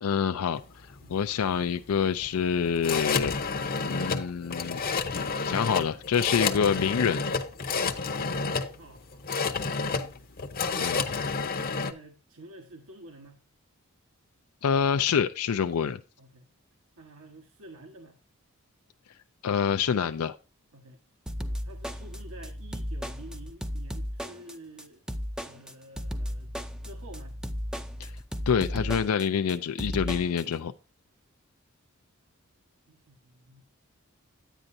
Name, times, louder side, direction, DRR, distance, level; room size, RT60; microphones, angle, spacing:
voice 1, 0.0-3.3 3.8-4.8 5.2-7.2 10.8-11.0 14.6-16.0 19.4-20.4 28.0-28.1 28.5-30.7, left 7 dB, 90° left, 0.4 m, -27 dB
sound 1, 0.5-11.9, left 4 dB, 40° left, 0.7 m, -30 dB
voice 2, 7.9-11.3 11.9-13.4 16.2-16.5 17.0-18.2 20.7-21.0 21.6-25.0 25.4-27.4 32.9-33.6, right 2 dB, 75° right, 1.2 m, -50 dB
sound 2, 21.3-30.4, equal, 5° right, 0.4 m, -35 dB
9.9 x 9.1 x 2.6 m
head